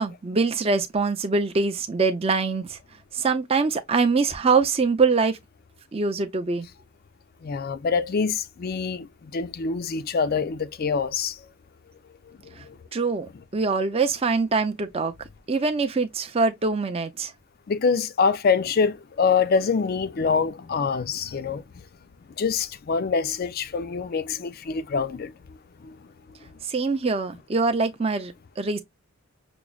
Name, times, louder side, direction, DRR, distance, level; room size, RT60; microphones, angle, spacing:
voice 1, 0.0-2.8 3.1-5.4 5.9-6.7 12.6-12.7 12.9-15.1 15.5-17.3 26.6-28.8, right 4 dB, 25° right, 0.4 m, -24 dB
voice 2, 7.4-11.4 12.3-12.4 12.6-12.8 17.7-21.6 22.4-25.3 25.8-26.0, left 5 dB, 45° left, 0.4 m, -25 dB
6.0 x 2.0 x 2.3 m
head